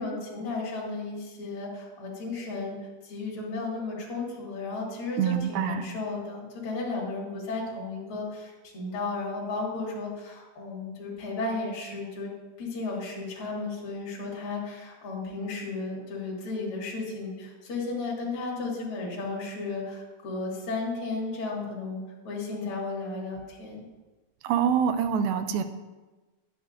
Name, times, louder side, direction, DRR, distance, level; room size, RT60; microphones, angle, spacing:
voice 1, 0.0-2.8 3.0-12.3 12.6-23.9, left 3 dB, 40° left, -5 dB, 2.7 m, -34 dB
voice 2, 5.2-5.9 24.4-25.6, right 8 dB, 85° right, 9 dB, 2.4 m, -25 dB
11.0 x 8.6 x 2.6 m, 1.2 s
omnidirectional pair, 4.3 m